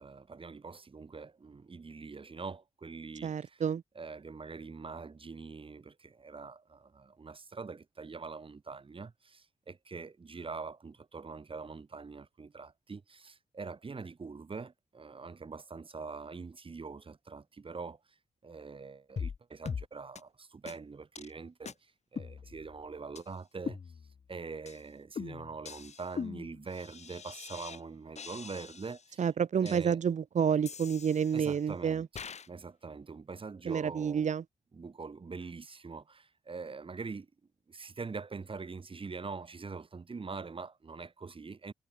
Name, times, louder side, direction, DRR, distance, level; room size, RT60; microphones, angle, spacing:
voice 1, 0.0-3.7 4.0-18.0 18.4-23.8 24.3-29.3 29.6-30.0 31.3-34.3 34.7-37.3 37.7-41.7, right 4 dB, 40° right, 7.3 m, -44 dB
voice 2, 3.2-3.8 29.2-32.1 33.7-34.4, right 7 dB, 65° right, 2.1 m, -29 dB
sound 1, 19.2-19.4 19.7-19.9 20.2-20.3 20.7-20.8 21.2-21.3 21.7-21.8 22.2-22.8 23.2-23.3 23.7-24.3 24.7-24.8 25.2-27.8 28.2-29.1 29.7-29.8 30.7-31.6 32.2-32.5, left 6 dB, 55° left, 4.6 m, -42 dB
cardioid pair, 80°, 14 cm